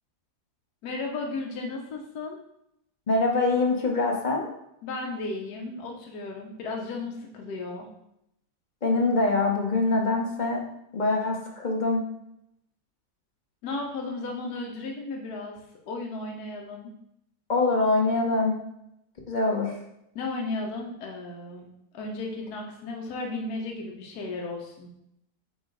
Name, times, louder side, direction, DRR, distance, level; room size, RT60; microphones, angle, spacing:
voice 1, 0.8-2.4 4.8-7.9 13.6-15.6 15.8-16.9 20.1-21.7 21.9-24.9, left 3 dB, 75° left, 1 dB, 1.3 m, -34 dB
voice 2, 3.1-4.5 8.8-10.6 10.9-12.0 17.5-18.6 19.3-19.7, left 3 dB, 35° left, 1 dB, 0.8 m, -24 dB
8.5 x 3.0 x 3.8 m, 0.80 s
omnidirectional pair, 1.7 m